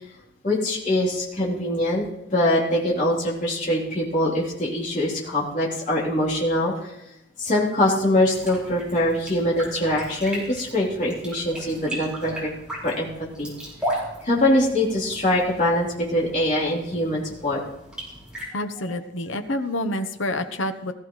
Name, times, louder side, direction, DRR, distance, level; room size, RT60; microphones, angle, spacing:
voice 1, 0.4-2.0 2.3-7.0 7.4-12.5 12.8-13.5 13.8-13.9 14.2-17.6, left 1 dB, 40° left, -4 dB, 3.5 m, -23 dB
sound 1, 8.3-18.4, equal, 5° right, 5.0 m, -36 dB
voice 2, 18.5-20.9, left 1 dB, 75° left, 9 dB, 1.0 m, -28 dB
19.0 x 14.0 x 3.2 m, 0.90 s
head